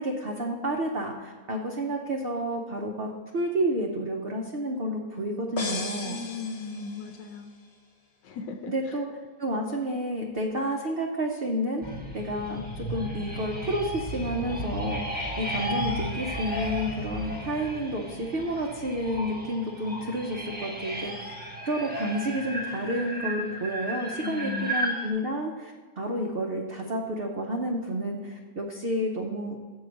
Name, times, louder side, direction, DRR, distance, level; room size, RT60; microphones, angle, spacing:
voice 1, 0.0-6.2 8.7-9.1 9.4-11.8 12.1-21.3 21.7-29.6, equal, 65° right, 0 dB, 0.5 m, -30 dB
sound 1, 5.6-7.4, left 3 dB, 45° left, 1.1 m, -36 dB
voice 2, 6.0-7.5 8.2-8.7 24.2-24.8, left 5 dB, 80° left, 5 dB, 1.3 m, -36 dB
sound 2, 11.8-25.1, equal, 10° right, 0.5 m, -34 dB
7.2 x 4.7 x 6.3 m, 1.5 s
omnidirectional pair, 1.9 m